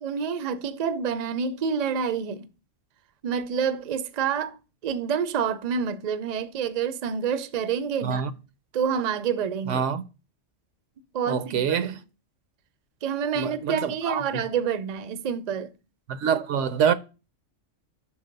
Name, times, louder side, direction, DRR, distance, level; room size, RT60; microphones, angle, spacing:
voice 1, 0.0-2.5 3.2-4.6 4.8-8.3 8.7-9.8 11.1-11.9 13.0-15.7, right 7 dB, 50° right, 0.5 m, -28 dB
voice 2, 9.7-10.0 11.3-12.0 13.4-14.2 16.1-16.9, right 7 dB, 80° right, 0.9 m, -25 dB
6.1 x 4.8 x 5.1 m
omnidirectional pair, 1.3 m